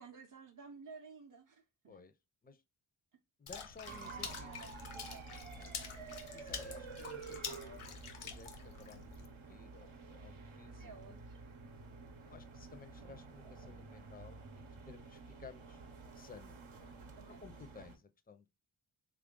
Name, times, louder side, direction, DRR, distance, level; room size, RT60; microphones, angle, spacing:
voice 1, 0.0-2.0 3.9-5.3 10.7-11.4 17.0-17.5, right 5 dB, 40° right, 0.6 m, -55 dB
voice 2, 3.4-4.7 5.5-5.7 6.3-9.1 9.4-11.2 12.2-14.6 14.9-15.8 16.1-17.0 17.3-18.5, left 4 dB, 20° left, 0.4 m, -56 dB
Water / Splash splatter, 3.5-9.3, left 6 dB, 80° left, 0.7 m, -47 dB
sound 1, 3.9-18.0, right 4 dB, 75° right, 0.8 m, -50 dB
3.3 x 2.4 x 3.6 m
wide cardioid pair, 50°, 49 cm